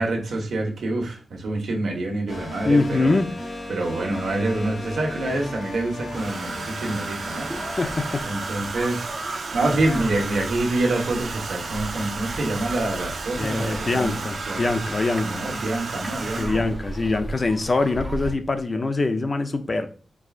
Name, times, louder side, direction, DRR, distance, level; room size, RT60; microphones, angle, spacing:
voice 1, 0.0-3.1 3.7-7.7 8.3-9.1 9.5-14.7 15.2-16.6, right 2 dB, 85° right, 1.3 m, -26 dB
sound 1, 2.3-8.6, left 2 dB, 55° left, 1.5 m, -36 dB
voice 2, 2.6-3.4 7.6-8.3 13.3-15.4 16.3-19.9, left 3 dB, 40° left, 0.6 m, -24 dB
Domestic sounds home sounds, 6.0-16.8 18.0-18.3 18.6-18.9, right 4 dB, 65° right, 0.6 m, -33 dB
sound 2, 7.3-18.4, right 1 dB, 10° right, 0.8 m, -37 dB
4.7 x 4.6 x 2.5 m
wide cardioid pair, 100°, 0 cm